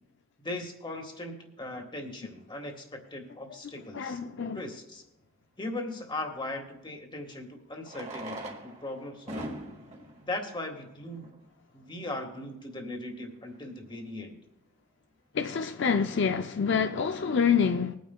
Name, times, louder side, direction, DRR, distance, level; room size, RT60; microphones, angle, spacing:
voice 1, 0.4-4.2 4.5-5.0 5.6-9.5 10.2-11.3 11.7-14.4, left 2 dB, 25° left, 1.6 m, -38 dB
voice 2, 3.9-4.6 15.3-18.0, left 6 dB, 60° left, 0.5 m, -27 dB
Fireworks, 4.3-4.4 6.6-6.7 7.8-11.5 12.3-12.4 12.6-12.7 12.9-13.0 13.5-13.7, right 1 dB, 35° right, 1.7 m, -42 dB
22.0 x 9.3 x 2.3 m
head